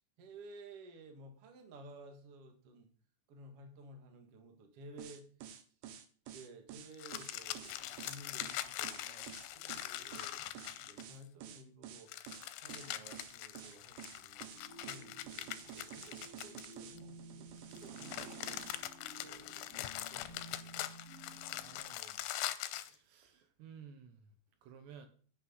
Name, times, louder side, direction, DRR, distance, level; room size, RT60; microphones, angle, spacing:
voice 1, 0.2-2.9 3.3-5.3 6.3-12.1 12.6-14.5 14.8-18.6 19.1-20.9, right 2 dB, 50° right, 4 dB, 1.8 m, -55 dB
sound 1, 5.0-18.9, right 9 dB, 90° right, 3.7 m, -50 dB
sound 2, 6.9-11.2 12.1-17.0 17.7-22.9, left 14 dB, 85° left, 3.0 m, -43 dB
sound 3, 14.5-21.8, right 1 dB, 20° right, 5.0 m, -55 dB
voice 2, 17.9-18.5 21.6-22.3 22.6-24.3 24.6-25.1, right 7 dB, 70° right, 7 dB, 3.1 m, -56 dB
10.5 x 9.2 x 4.0 m, 0.43 s
omnidirectional pair, 5.4 m